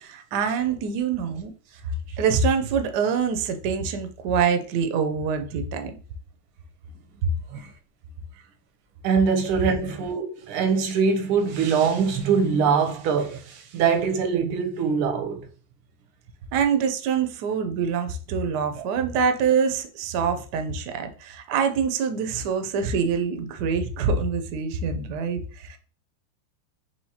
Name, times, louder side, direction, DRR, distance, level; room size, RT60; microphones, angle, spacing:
voice 1, 0.0-1.5 2.2-6.0 7.2-7.3 16.5-25.8, right 6 dB, 70° right, 1.0 m, -25 dB
voice 2, 9.0-15.5 18.8-18.9, right 6 dB, 85° right, 1.6 m, -23 dB
4.8 x 3.1 x 2.8 m
omnidirectional pair, 2.3 m